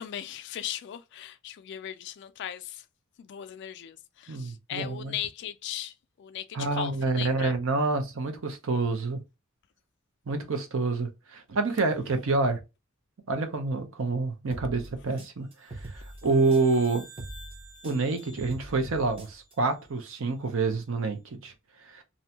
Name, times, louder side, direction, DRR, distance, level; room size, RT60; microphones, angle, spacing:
voice 1, 0.0-2.9 3.2-7.6, left 10 dB, 55° left, 0.3 m, -38 dB
voice 2, 4.3-5.1 6.5-9.2 10.3-12.6 13.3-17.1 17.8-22.0, right 3 dB, 70° right, 0.6 m, -28 dB
sound 1, 14.5-16.9 17.2-19.5, right 1 dB, 25° right, 0.6 m, -42 dB
sound 2, 15.5-20.1, right 2 dB, 90° right, 1.2 m, -52 dB
2.6 x 2.2 x 2.7 m
head